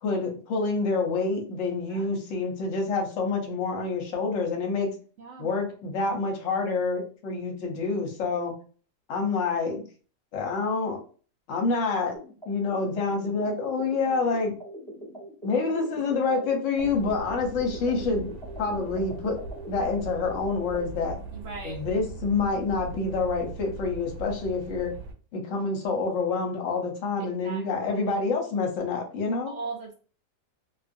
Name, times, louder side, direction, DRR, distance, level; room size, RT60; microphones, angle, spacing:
voice 1, 0.0-4.9 5.4-8.5 9.1-9.8 10.3-11.0 11.5-12.1 12.5-14.5 15.4-18.3 18.6-19.4 19.7-21.2 21.6-24.9 25.3-29.5, left 4 dB, 55° left, 1 dB, 1.0 m, -27 dB
voice 2, 5.2-5.6 16.1-16.2 21.3-21.9 27.2-27.7 29.5-29.9, right 4 dB, 85° right, 1 dB, 0.6 m, -39 dB
sound 1, 12.1-20.9, right 1 dB, 5° left, 0.5 m, -42 dB
sound 2, 16.8-25.1, right 3 dB, 70° right, 1.1 m, -40 dB
2.5 x 2.4 x 2.5 m, 0.39 s
omnidirectional pair, 1.8 m